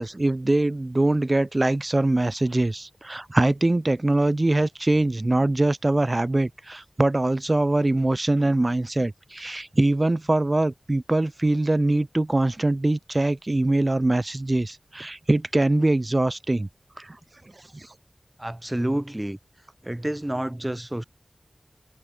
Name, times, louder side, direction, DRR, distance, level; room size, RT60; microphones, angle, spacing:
voice 1, 0.0-16.7 17.0-17.2 17.7-17.9, right 2 dB, 35° right, 2.3 m, -23 dB
voice 2, 18.4-19.4 19.8-21.0, right 1 dB, 15° right, 4.8 m, -29 dB
wide cardioid pair, 65°, 0 cm